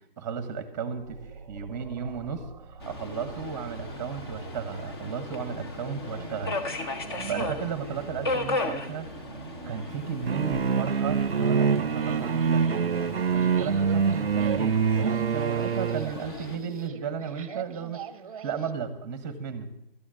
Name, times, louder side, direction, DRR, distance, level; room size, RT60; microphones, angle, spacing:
voice 1, 0.2-2.4 2.9-6.6 7.3-9.1 9.4-18.0 18.4-19.7, right 6 dB, 20° right, 11 dB, 1.1 m, -34 dB
sound 1, 1.0-18.7, right 7 dB, 35° right, 0.8 m, -44 dB
Subway metro underground, 2.8-16.6, left 2 dB, 25° left, 1.1 m, -37 dB
sound 2, 10.3-16.1, right 6 dB, 85° right, 0.5 m, -25 dB
12.5 x 9.8 x 6.3 m, 0.81 s
figure-of-eight pair, 145°, 29 cm